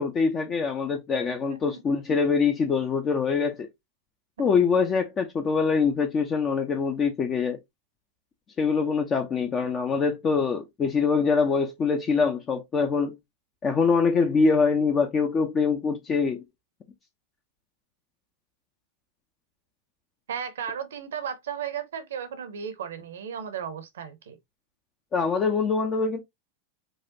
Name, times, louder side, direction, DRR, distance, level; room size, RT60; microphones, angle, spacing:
voice 1, 0.0-3.7 4.4-7.6 8.6-13.2 13.6-16.4 25.1-26.2, left 5 dB, 25° left, 0.6 m, -24 dB
voice 2, 20.3-24.4, right 8 dB, 60° right, 0.8 m, -35 dB
4.8 x 2.4 x 2.6 m
figure-of-eight pair, 90°, 0 cm